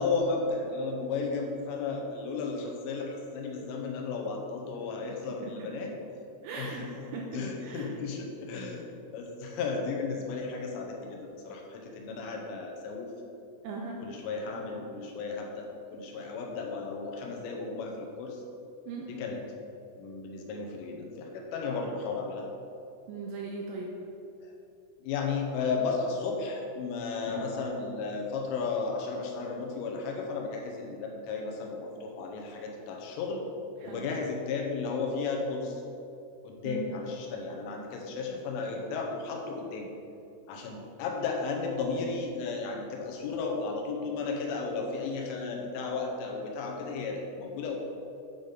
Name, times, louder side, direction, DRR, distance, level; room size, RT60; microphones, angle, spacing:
voice 1, 0.0-5.9 6.6-8.9 9.1-13.1 14.0-15.7 15.9-18.4 19.1-19.4 20.0-22.5 24.4-24.5 25.0-33.4 33.8-35.8 36.4-39.9 40.5-47.8, left 4 dB, 80° left, 0 dB, 3.4 m, -34 dB
voice 2, 5.3-5.7 6.4-8.0 13.6-14.0 18.9-19.2 23.1-23.9 33.8-34.1 36.6-36.9, right 4 dB, 85° right, -1 dB, 2.6 m, -39 dB
sound 1, 14.5-17.8 21.6-23.6 27.3-30.4, left 1 dB, 65° left, 2.7 m, -51 dB
9.8 x 4.0 x 5.2 m, 2.6 s
omnidirectional pair, 5.7 m